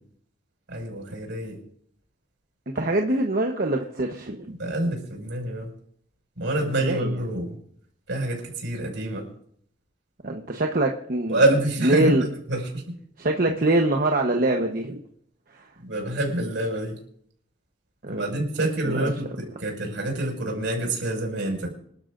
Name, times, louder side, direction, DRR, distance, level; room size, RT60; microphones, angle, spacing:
voice 1, 0.7-1.6 4.6-5.7 6.4-7.6 8.1-9.3 11.3-12.8 13.5-13.6 15.8-17.0 18.1-19.3 19.6-21.7, right 1 dB, 75° right, 0 dB, 5.8 m, -26 dB
voice 2, 2.7-4.5 6.8-7.2 10.2-11.4 11.8-12.2 13.2-15.0 15.5-15.7 18.0-19.1, right 1 dB, 50° right, 2 dB, 1.1 m, -24 dB
27.0 x 12.0 x 2.6 m, 0.66 s
head